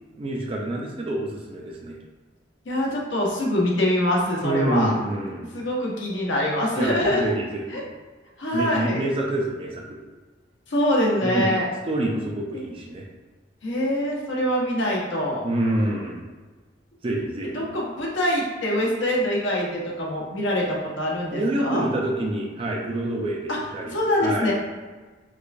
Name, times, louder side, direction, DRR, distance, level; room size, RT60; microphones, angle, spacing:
voice 1, 0.1-2.0 4.4-5.5 6.8-7.8 8.5-9.8 11.2-11.5 11.9-13.1 15.4-16.2 17.0-17.8 21.3-24.5, right 1 dB, 30° right, -1 dB, 0.4 m, -27 dB
voice 2, 2.7-4.9 5.5-7.2 7.7-7.8 8.4-9.0 10.7-11.7 13.6-15.4 17.5-21.9 23.5-23.6 23.9-24.5, left 1 dB, 75° left, -3 dB, 0.9 m, -24 dB
4.5 x 2.3 x 2.5 m, 1.3 s
head